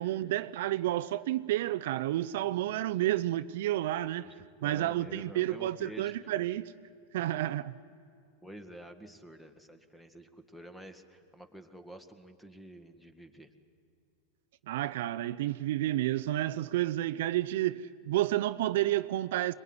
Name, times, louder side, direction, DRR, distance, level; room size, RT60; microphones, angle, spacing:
voice 1, 0.0-6.7 7.1-7.8 14.7-19.5, right 14 dB, 70° right, 0.6 m, -30 dB
voice 2, 4.2-6.3 8.4-13.5, right 1 dB, 5° left, 1.9 m, -49 dB
23.5 x 21.0 x 9.8 m
hypercardioid pair, 115°, 0 cm